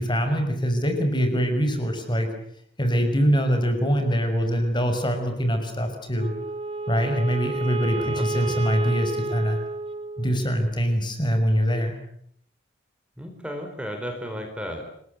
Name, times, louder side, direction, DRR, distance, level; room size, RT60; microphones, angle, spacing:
voice 1, 0.0-2.3 2.8-6.3 6.9-9.6 10.2-12.0, equal, 25° left, 6 dB, 5.8 m, -23 dB
Wind instrument woodwind instrument, 6.1-10.6, right 3 dB, 30° right, 2.2 m, -31 dB
voice 2, 8.0-8.6 13.2-14.8, equal, 5° right, 4 dB, 4.6 m, -34 dB
29.5 x 21.0 x 8.1 m, 0.68 s
head